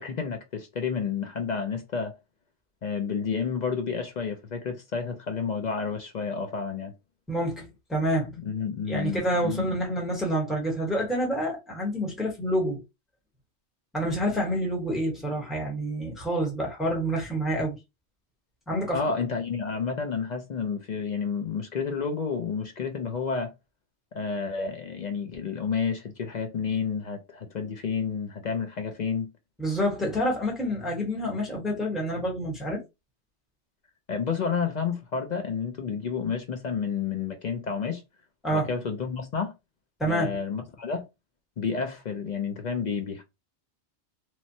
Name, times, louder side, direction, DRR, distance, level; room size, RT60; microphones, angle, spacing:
voice 1, 0.0-2.1 2.8-6.9 8.4-9.7 18.9-23.5 24.1-29.3 34.1-38.0 38.5-39.5 40.0-41.1 41.6-43.2, left 5 dB, 55° left, 0.5 m, -30 dB
voice 2, 7.3-8.3 8.9-12.8 13.9-17.8 18.7-19.0 29.6-32.8 38.4-38.7 40.0-40.4, equal, ahead, 0.9 m, -28 dB
3.1 x 2.1 x 2.6 m
omnidirectional pair, 1.2 m